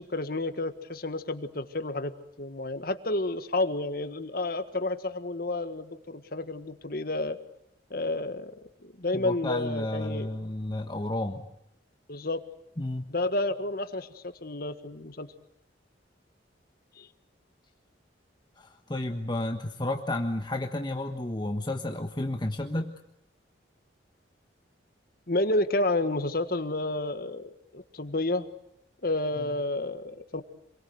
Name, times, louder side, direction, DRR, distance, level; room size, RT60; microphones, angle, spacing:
voice 1, 0.0-2.1 2.4-7.4 7.9-8.5 8.8-10.3 12.1-12.4 13.1-15.3 17.0-17.1 25.3-28.5 29.0-30.4, left 2 dB, 55° left, 10 dB, 1.7 m, -30 dB
voice 2, 9.1-11.5 12.8-13.1 18.6-22.9 29.4-29.5, left 1 dB, 25° left, 5 dB, 1.3 m, -32 dB
27.5 x 22.5 x 8.1 m, 0.77 s
head